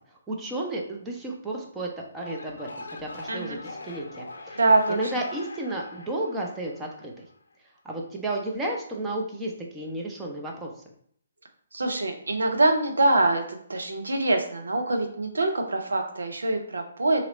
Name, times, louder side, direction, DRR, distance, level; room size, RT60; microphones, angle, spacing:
voice 1, 0.3-4.6 4.9-7.2 7.8-10.7, right 1 dB, 10° right, -1 dB, 0.7 m, -32 dB
sound 1, 2.0-7.4, left 2 dB, 65° left, 0.5 m, -42 dB
voice 2, 3.3-3.6 4.6-5.0 11.7-17.2, right 2 dB, 75° right, 4 dB, 0.7 m, -24 dB
3.0 x 3.0 x 3.9 m, 0.63 s
figure-of-eight pair, 135°, 0 cm